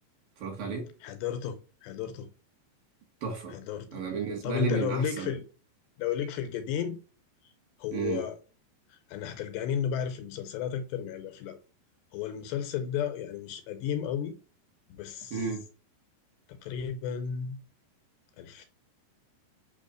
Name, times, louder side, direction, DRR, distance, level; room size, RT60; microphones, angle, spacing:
voice 1, 0.4-0.9 3.2-3.6 3.9-5.4 7.9-8.3 15.3-15.6, right 4 dB, 55° right, 3.1 m, -32 dB
voice 2, 1.0-2.3 3.5-4.0 4.4-5.4 6.0-7.0 7.8-8.4 9.1-11.6 12.1-14.4 14.9-15.4 16.5-17.6 18.4-18.7, left 8 dB, 75° left, 2.8 m, -33 dB
8.5 x 3.0 x 6.3 m
omnidirectional pair, 5.2 m